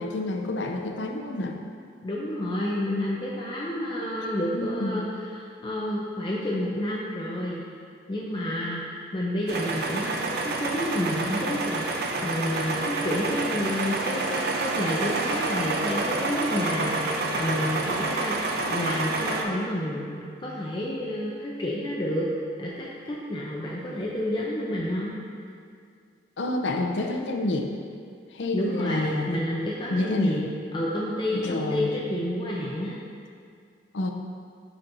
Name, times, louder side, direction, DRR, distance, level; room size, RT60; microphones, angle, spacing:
voice 1, 0.0-1.6 4.5-5.1 26.4-27.8 28.3-29.4 29.9-30.4 31.3-31.9 33.9-34.1, left 2 dB, 70° left, 3 dB, 0.6 m, -29 dB
voice 2, 2.0-7.6 8.1-22.3 22.6-25.2 28.5-30.5 30.7-33.0, left 1 dB, 25° left, -4 dB, 0.5 m, -30 dB
sound 1, 9.5-19.4, right 2 dB, 60° right, 0.6 m, -28 dB
9.9 x 4.3 x 2.6 m, 2.3 s
head